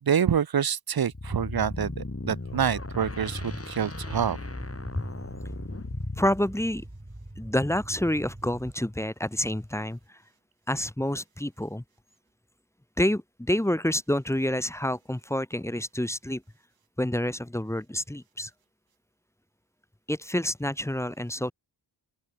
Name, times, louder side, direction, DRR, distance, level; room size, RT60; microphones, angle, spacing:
voice 1, 0.0-4.4, right 8 dB, 50° right, 0.6 m, -27 dB
sound 1, 1.1-6.4, left 2 dB, 30° left, 3.3 m, -37 dB
sound 2, 2.4-8.7, right 1 dB, 20° right, 6.5 m, -43 dB
voice 2, 6.2-6.8 7.4-10.2 10.7-11.8 13.0-16.4 17.0-18.5 20.1-21.5, left 1 dB, 5° left, 0.6 m, -28 dB
open air
wide cardioid pair, 70°, 46 cm